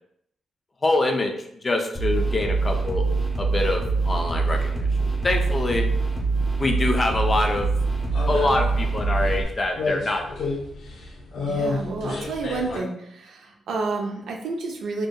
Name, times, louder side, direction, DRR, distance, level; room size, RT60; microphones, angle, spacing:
voice 1, 0.8-1.3 1.6-3.1 3.4-4.9 5.2-5.9 6.6-7.7 8.3-10.4, left 2 dB, 25° left, 3 dB, 0.3 m, -25 dB
sound 1, 1.9-9.4, right 4 dB, 10° right, 0.7 m, -24 dB
sound 2, 7.3-12.8, left 3 dB, 85° left, 0.6 m, -31 dB
voice 2, 11.4-15.1, right 3 dB, 80° right, 2 dB, 0.4 m, -30 dB
2.6 x 2.2 x 2.2 m, 0.72 s
wide cardioid pair, 140°, 0 cm